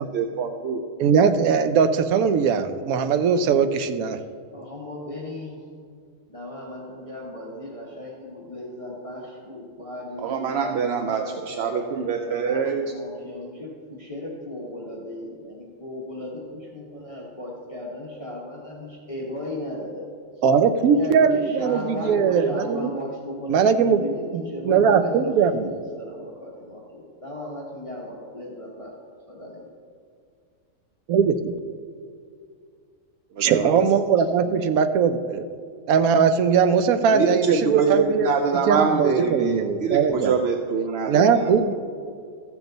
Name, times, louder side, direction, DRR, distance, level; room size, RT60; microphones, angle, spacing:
voice 1, 0.1-0.8 10.2-12.9 33.4-33.7 37.1-41.5, right 5 dB, 60° right, 5 dB, 0.7 m, -24 dB
voice 2, 1.0-4.2 20.4-22.9 23.5-24.0 24.3-25.7 31.1-31.5 33.4-35.5 35.9-38.3 38.5-40.3 41.1-41.7, right 6 dB, 85° right, 9 dB, 1.1 m, -20 dB
voice 3, 4.5-5.6 6.3-20.1 20.8-28.9 29.3-29.7, left 1 dB, 25° left, -4 dB, 1.2 m, -36 dB
14.0 x 7.1 x 4.0 m, 2.3 s
omnidirectional pair, 1.5 m